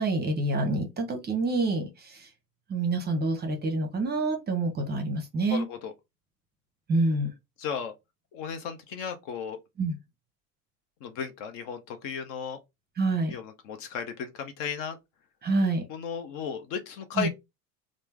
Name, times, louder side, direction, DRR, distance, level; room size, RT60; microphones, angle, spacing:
voice 1, 0.0-2.3 2.7-5.7 6.9-7.3 9.8-10.0 13.0-13.3 15.4-15.8 17.2-17.3, right 2 dB, 20° right, 0.8 m, -27 dB
voice 2, 5.5-5.9 7.6-7.9 8.3-9.6 11.0-12.6 13.3-15.0 15.9-17.3, left 7 dB, 45° left, 0.6 m, -35 dB
3.2 x 2.0 x 3.1 m
figure-of-eight pair, 75°, 48 cm